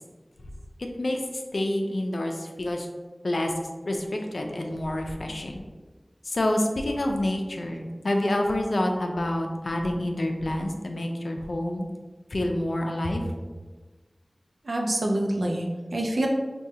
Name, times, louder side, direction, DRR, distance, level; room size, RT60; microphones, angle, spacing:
voice 1, 0.8-1.2 1.5-2.9 3.2-3.5 3.9-5.6 6.3-11.9 12.3-13.3, left 1 dB, 90° left, 3 dB, 0.4 m, -28 dB
voice 2, 14.6-16.3, right 1 dB, 90° right, 0 dB, 0.5 m, -26 dB
4.7 x 2.2 x 2.7 m, 1.3 s
wide cardioid pair, 60°, 0 cm